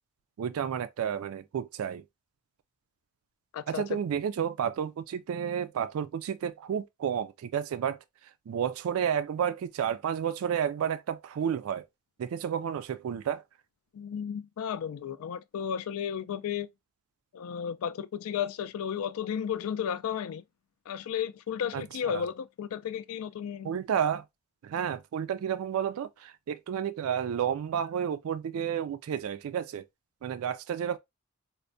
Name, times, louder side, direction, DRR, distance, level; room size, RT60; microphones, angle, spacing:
voice 1, 0.4-2.0 3.7-8.0 8.5-11.9 12.2-13.4 21.7-22.3 23.6-24.2 24.6-29.8 30.2-31.0, right 8 dB, 70° right, 0.3 m, -31 dB
voice 2, 3.5-4.0 13.9-16.7 17.3-20.4 20.9-23.7, left 8 dB, 75° left, 0.3 m, -33 dB
4.2 x 2.1 x 2.5 m
head